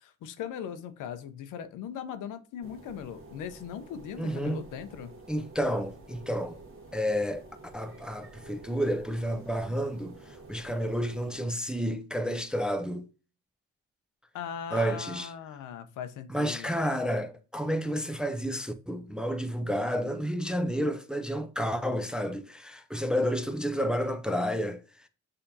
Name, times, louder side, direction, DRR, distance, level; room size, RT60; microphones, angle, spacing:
voice 1, 0.0-5.1 14.3-16.8, left 8 dB, 85° left, 0.7 m, -39 dB
sound 1, 2.6-11.5, right 2 dB, 45° right, 1.2 m, -50 dB
voice 2, 4.2-4.6 5.3-6.6 6.9-13.1 14.7-15.3 16.3-25.1, equal, 5° right, 0.4 m, -30 dB
6.5 x 2.8 x 2.7 m
cardioid pair, 90°, 30 cm